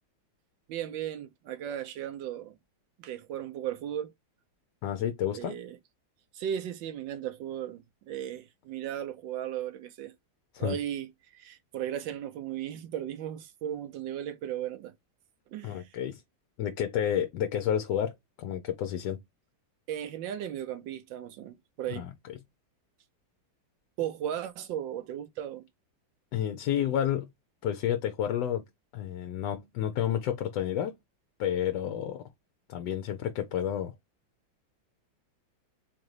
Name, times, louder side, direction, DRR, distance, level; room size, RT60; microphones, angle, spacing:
voice 1, 0.7-2.6 3.0-4.1 5.3-5.8 6.3-10.1 10.6-14.9 15.5-15.9 19.9-22.1 24.0-25.6, right 10 dB, 75° right, 1.3 m, -36 dB
voice 2, 4.8-5.6 10.5-10.8 15.6-16.2 16.6-19.2 22.0-22.1 26.3-27.3 27.6-28.7 28.9-31.0 31.4-32.3 32.7-33.9, left 10 dB, 75° left, 1.1 m, -30 dB
3.9 x 3.7 x 3.1 m
omnidirectional pair, 2.1 m